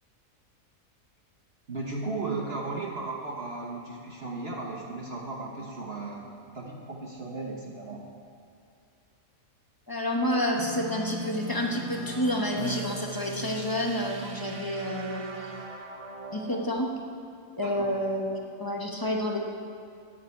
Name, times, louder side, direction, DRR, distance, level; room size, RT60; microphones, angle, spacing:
voice 1, 1.7-6.3 6.5-8.1 17.6-17.8, right 3 dB, 45° right, -2 dB, 1.5 m, -35 dB
voice 2, 9.9-15.5 16.3-16.9 17.6-18.2 18.6-19.4, left 1 dB, 15° left, 0 dB, 1.1 m, -29 dB
sound 1, 10.6-16.8, right 2 dB, 25° right, 0.9 m, -39 dB
10.0 x 9.8 x 8.3 m, 2.4 s
omnidirectional pair, 1.4 m